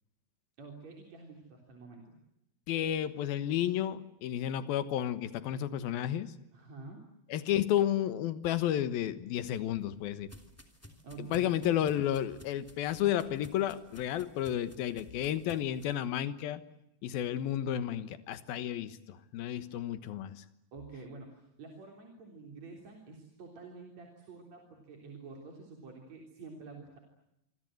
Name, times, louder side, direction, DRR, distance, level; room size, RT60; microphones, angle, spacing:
voice 1, 0.6-2.1 6.5-7.1 11.0-11.5 11.8-11.9 20.7-27.0, right 4 dB, 45° right, 1 dB, 4.6 m, -48 dB
voice 2, 2.7-6.3 7.3-10.3 11.2-16.6 17.0-20.4, left 11 dB, 70° left, 12 dB, 3.1 m, -32 dB
sound 1, 9.4-15.9, equal, 5° left, 2.2 m, -56 dB
27.0 x 25.5 x 7.9 m, 0.84 s
omnidirectional pair, 4.5 m